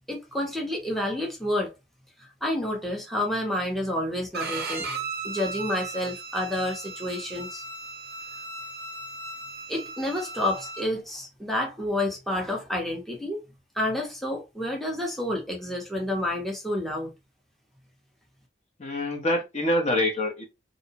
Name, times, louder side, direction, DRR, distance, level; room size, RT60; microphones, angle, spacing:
voice 1, 0.1-1.7 2.2-4.9 5.2-7.6 9.7-13.4 13.7-17.1, left 1 dB, ahead, 0.6 m, -29 dB
Bowed string instrument, 4.3-10.8, right 4 dB, 55° right, 0.5 m, -36 dB
voice 2, 18.8-20.4, left 1 dB, 35° left, 0.7 m, -25 dB
2.6 x 2.0 x 2.8 m
head